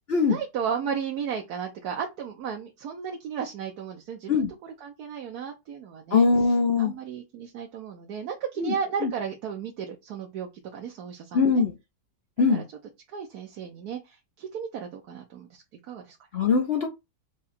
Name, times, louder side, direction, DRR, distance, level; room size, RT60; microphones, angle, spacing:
voice 1, 0.2-11.6 12.5-12.6 13.1-16.2, right 7 dB, 70° right, 1.2 m, -34 dB
voice 2, 6.1-6.9 8.6-8.7 9.0-9.1 11.3-11.7 12.4-12.6 16.3-16.9, left 4 dB, 50° left, 0.8 m, -21 dB
4.8 x 2.4 x 4.2 m
omnidirectional pair, 1.8 m